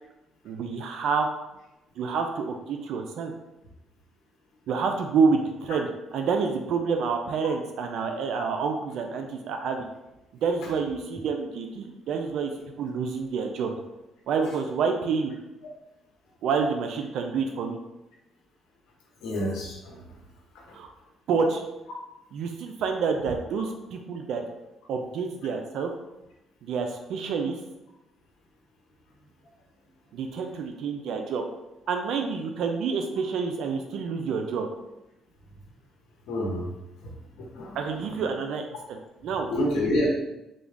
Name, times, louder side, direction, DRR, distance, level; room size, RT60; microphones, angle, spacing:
voice 1, 0.4-1.3 2.0-3.3 4.7-5.9 6.1-9.9 10.4-12.5 12.8-13.8 14.3-15.3 16.4-17.8 20.7-20.9 21.3-21.6 22.3-24.4 24.9-25.9 26.6-27.6 30.1-31.4 31.9-34.7 37.7-39.5, right 5 dB, 70° right, 4 dB, 0.4 m, -28 dB
voice 2, 19.2-20.0 36.3-36.7 37.4-37.8 39.5-40.1, left 1 dB, 85° left, -3 dB, 0.8 m, -27 dB
3.6 x 2.2 x 3.4 m, 0.94 s
cardioid pair, 105°, 0 cm